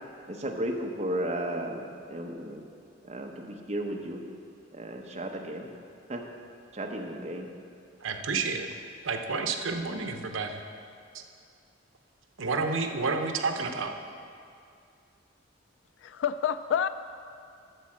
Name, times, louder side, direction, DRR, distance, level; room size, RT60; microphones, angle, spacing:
voice 1, 0.3-2.7 3.0-4.2 4.7-5.7 6.1-6.2 6.7-7.5, right 1 dB, 35° right, 1 dB, 0.9 m, -34 dB
voice 2, 8.0-8.7 9.0-10.6 11.1-11.2 12.4-13.9, right 4 dB, 85° right, 5 dB, 0.8 m, -30 dB
voice 3, 16.0-16.9, left 8 dB, 70° left, 12 dB, 0.3 m, -28 dB
12.5 x 4.2 x 7.3 m, 2.3 s
head